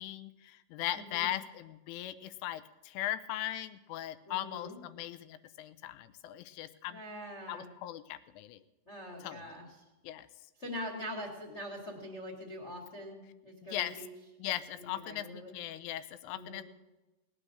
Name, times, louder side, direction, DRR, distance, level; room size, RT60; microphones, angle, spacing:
voice 1, 0.0-7.0 7.5-8.6 9.2-9.4 10.0-10.3 13.7-13.9 14.4-16.6, left 13 dB, 90° left, 12 dB, 3.2 m, -39 dB
voice 2, 0.9-1.3 4.2-4.8 6.9-7.7 8.8-9.7 10.6-14.1 14.8-15.5 16.3-16.6, equal, 30° left, 0 dB, 1.2 m, -43 dB
19.0 x 9.0 x 6.3 m, 1.1 s
omnidirectional pair, 5.6 m